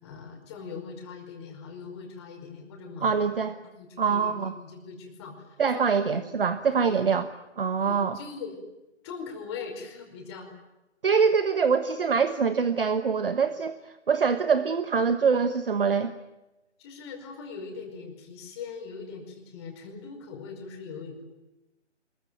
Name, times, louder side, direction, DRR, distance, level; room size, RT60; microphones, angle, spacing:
voice 1, 0.0-3.2 3.7-6.3 6.8-7.1 7.8-8.6 9.0-10.5 16.8-21.2, left 5 dB, 20° left, 3 dB, 5.1 m, -41 dB
voice 2, 3.0-3.5 4.0-4.5 5.6-7.3 7.6-8.2 11.0-16.1, right 6 dB, 50° right, 11 dB, 1.3 m, -24 dB
25.5 x 22.0 x 9.3 m, 1.0 s
figure-of-eight pair, 145°, 36 cm